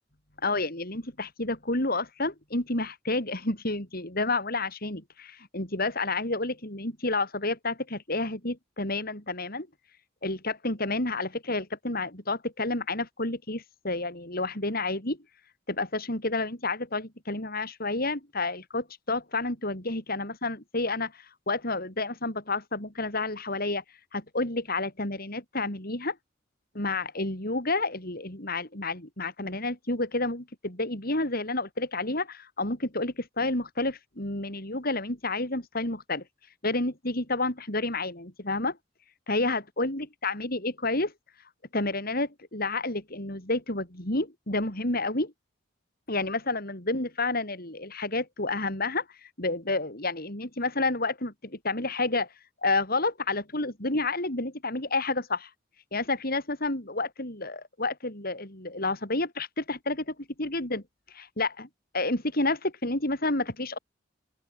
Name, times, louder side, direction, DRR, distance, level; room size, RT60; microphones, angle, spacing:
voice 1, 0.4-9.7 10.2-15.2 15.7-23.8 24.1-26.2 26.7-36.2 36.6-38.8 39.3-41.1 41.7-45.3 46.1-52.3 52.6-55.5 55.9-60.8 61.1-61.7 61.9-63.8, left 2 dB, 50° left, 7.1 m, -30 dB
open air
head